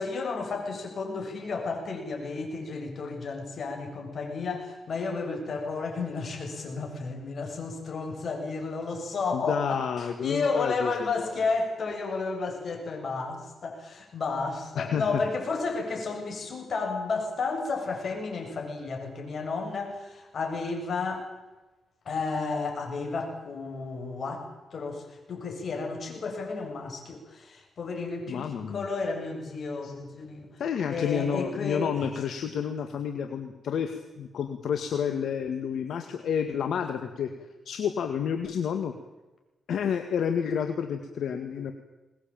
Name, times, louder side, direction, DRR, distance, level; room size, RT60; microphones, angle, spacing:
voice 1, 0.0-21.3 22.1-30.5 30.9-32.2, left 4 dB, 55° left, 3 dB, 7.4 m, -32 dB
voice 2, 9.3-10.9 11.2-11.3 14.8-15.2 28.3-28.9 29.8-29.9 30.6-37.3 37.7-38.9 39.7-41.7, left 7 dB, 75° left, 6 dB, 2.0 m, -30 dB
22.5 x 20.0 x 9.1 m, 1.1 s
cardioid pair, 100°, 0 cm